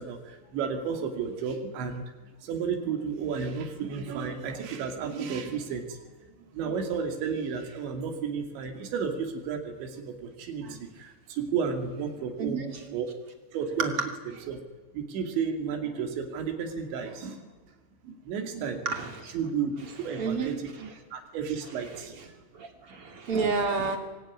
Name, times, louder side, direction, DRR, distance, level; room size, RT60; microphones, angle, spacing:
voice 1, 0.0-2.0 2.4-6.3 6.5-13.1 13.5-13.9 14.5-14.6 14.9-17.5 18.0-18.8 19.3-22.3 23.3-23.5, right 6 dB, 85° right, 4 dB, 4.9 m, -33 dB
voice 2, 12.4-12.7 18.8-19.3 20.1-20.5 20.8-20.9 21.9-22.1 22.5-24.0, right 4 dB, 35° right, 4 dB, 3.0 m, -30 dB
24.5 x 20.5 x 9.8 m, 1.2 s
omnidirectional pair, 5.1 m